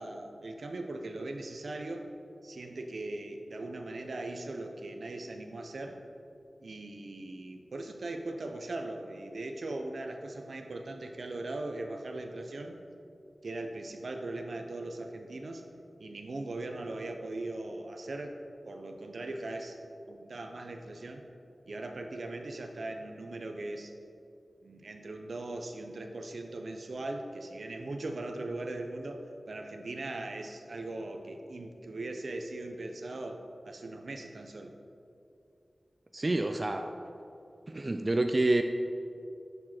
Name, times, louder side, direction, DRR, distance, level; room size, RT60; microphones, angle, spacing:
voice 1, 0.0-2.1 2.4-6.0 6.6-12.7 13.4-15.6 16.0-18.4 18.7-19.8 20.0-21.2 21.7-23.9 24.6-34.7, right 2 dB, 75° right, 4 dB, 0.6 m, -39 dB
voice 2, 36.1-36.9 37.7-38.6, right 2 dB, 35° right, 5 dB, 0.3 m, -28 dB
6.7 x 6.3 x 4.3 m, 2.6 s
wide cardioid pair, 75°, 0 cm